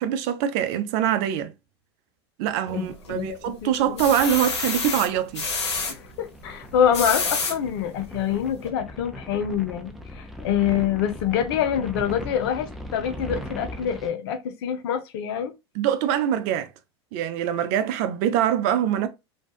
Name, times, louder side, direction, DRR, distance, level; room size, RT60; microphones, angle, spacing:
voice 1, 0.0-1.5 2.4-5.4 15.8-16.7 17.1-19.1, right 10 dB, 55° right, 0.4 m, -24 dB
sound 1, 2.7-3.3 3.7-5.9 6.7-7.6 8.2-8.3 8.6-8.7, left 4 dB, 85° left, 0.9 m, -28 dB
voice 2, 3.1-4.0 5.9-15.5, left 9 dB, 65° left, 0.5 m, -26 dB
sound 2, 4.4-14.1, equal, ahead, 0.5 m, -39 dB
2.6 x 2.2 x 2.3 m
hypercardioid pair, 95°, 14 cm